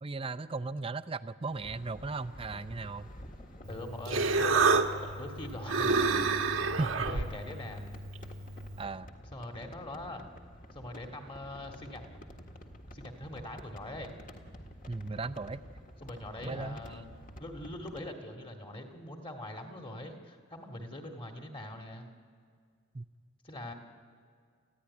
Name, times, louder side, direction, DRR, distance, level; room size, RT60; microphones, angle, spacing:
voice 1, 0.0-3.1 6.8-7.2 8.8-9.1 14.9-15.6 16.4-16.8 22.9-23.1, right 3 dB, 25° right, 12 dB, 0.5 m, -36 dB
sound 1, 1.4-18.1, equal, 40° left, 1.7 m, -50 dB
Human voice, 3.6-8.8, right 4 dB, 80° right, 1.3 m, -30 dB
voice 2, 3.7-4.6 5.0-6.0 6.5-6.8 7.0-7.9 9.3-10.3 10.7-12.0 12.8-14.1 16.0-17.0 17.4-22.1 23.4-23.7, left 1 dB, 25° left, 3 dB, 2.1 m, -42 dB
29.0 x 15.0 x 9.7 m, 2.1 s
head